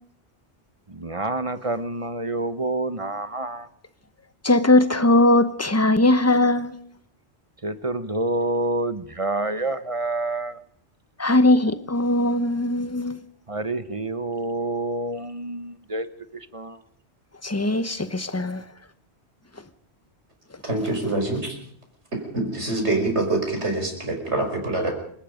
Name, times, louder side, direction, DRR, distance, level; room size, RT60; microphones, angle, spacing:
voice 1, 0.9-3.7 7.6-10.6 13.5-16.1 16.3-16.8, right 2 dB, 30° right, 1.1 m, -28 dB
voice 2, 4.4-6.7 11.2-13.2 17.4-18.6, left 2 dB, 15° left, 1.0 m, -19 dB
voice 3, 20.6-21.5 22.3-24.9, right 2 dB, 90° right, 6.0 m, -25 dB
28.0 x 18.0 x 5.2 m
omnidirectional pair, 1.1 m